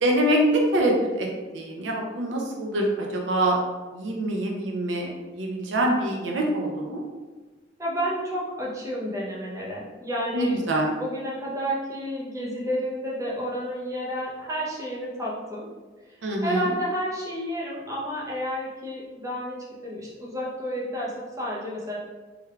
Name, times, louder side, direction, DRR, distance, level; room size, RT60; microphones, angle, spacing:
voice 1, 0.0-1.3 1.5-3.6 3.9-5.1 5.4-7.0 10.3-10.9 16.2-16.7, right 1 dB, 90° right, 0 dB, 0.6 m, -24 dB
voice 2, 7.8-15.7 16.4-22.0, equal, 20° right, -5 dB, 0.7 m, -31 dB
3.4 x 3.3 x 2.3 m, 1.3 s
head